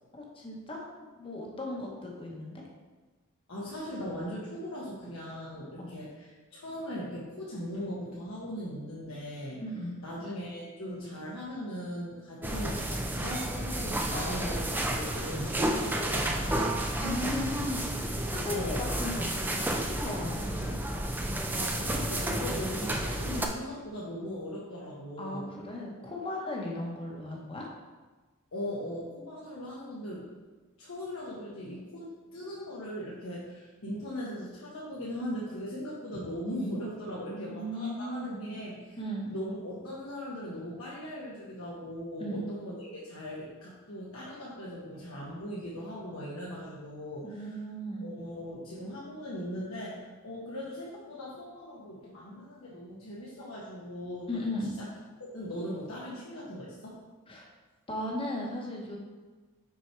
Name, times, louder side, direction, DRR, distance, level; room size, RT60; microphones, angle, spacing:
voice 1, 0.2-0.8 1.2-2.6 5.8-5.9 9.6-9.9 14.1-14.3 17.0-17.8 18.3-20.8 25.2-27.7 37.2-38.4 39.0-39.3 42.2-42.4 47.2-48.1 54.3-54.7 57.3-57.5 57.9-59.0, left 1 dB, 25° left, -1 dB, 1.0 m, -36 dB
voice 2, 3.5-9.6 10.0-16.8 18.5-18.9 21.5-25.5 28.5-30.3 30.8-39.0 39.3-47.6 48.0-54.5 55.3-57.0, equal, 80° left, -7 dB, 1.2 m, -39 dB
sound 1, 12.4-23.5, right 1 dB, 10° right, 0.4 m, -31 dB
6.2 x 4.4 x 4.6 m, 1.3 s
head